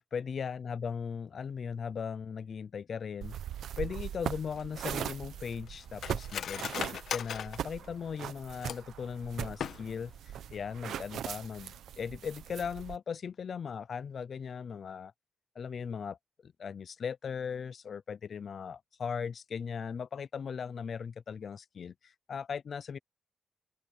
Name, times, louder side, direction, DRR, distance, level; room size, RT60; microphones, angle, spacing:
voice 1, 0.0-3.4 3.8-15.1 15.6-16.2 16.4-23.0, left 6 dB, 45° left, 0.6 m, -38 dB
sound 1, 3.2-13.0, right 10 dB, 80° right, 1.0 m, -40 dB
Cutlery silverware, 4.6-9.0 9.5-10.2 10.5-10.6 10.9-11.3 11.6-11.8, left 8 dB, 65° left, 1.3 m, -40 dB
cardioid pair, 135°, 0 cm